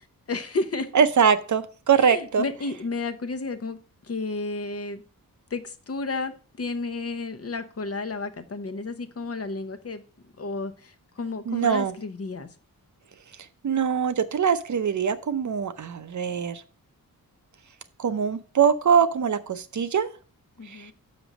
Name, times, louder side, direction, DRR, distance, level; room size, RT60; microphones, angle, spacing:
voice 1, 0.0-0.9 2.0-5.0 5.5-6.3 6.6-10.0 10.4-12.5 20.6-20.9, left 3 dB, 45° left, 0.9 m, -32 dB
voice 2, 0.9-2.4 11.5-11.9 13.6-16.6 18.0-20.1 20.7-20.9, right 7 dB, 60° right, 0.7 m, -23 dB
6.7 x 5.3 x 6.1 m
wide cardioid pair, 100°, 34 cm